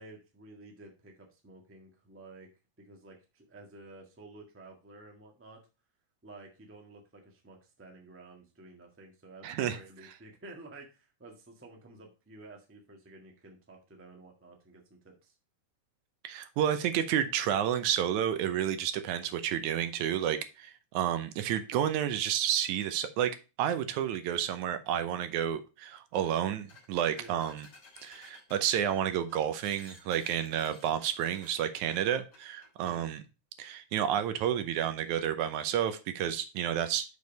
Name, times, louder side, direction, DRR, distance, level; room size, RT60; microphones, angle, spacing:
voice 1, 0.0-2.5 2.8-5.6 6.2-15.3 27.2-27.4 32.8-33.1, right 2 dB, 10° right, 1 dB, 0.7 m, -52 dB
voice 2, 9.4-9.8 16.2-23.3 23.6-27.7 28.0-33.2 33.6-37.0, right 10 dB, 80° right, 10 dB, 2.2 m, -30 dB
sound 1, 26.2-26.4 26.7-33.0, left 3 dB, 35° left, 2.8 m, -56 dB
6.3 x 5.3 x 5.2 m, 0.30 s
omnidirectional pair, 3.4 m